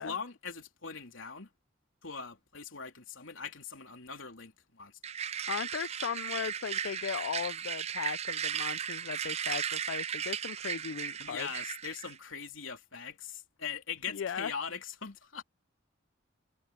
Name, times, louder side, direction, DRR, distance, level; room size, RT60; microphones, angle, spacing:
voice 1, 0.0-1.5 2.0-4.9 11.2-15.4, left 6 dB, 85° left, 3.2 m, -41 dB
sound 1, 5.0-12.2, right 8 dB, 35° right, 0.4 m, -36 dB
voice 2, 5.5-11.5 14.1-14.5, left 7 dB, 70° left, 0.4 m, -37 dB
head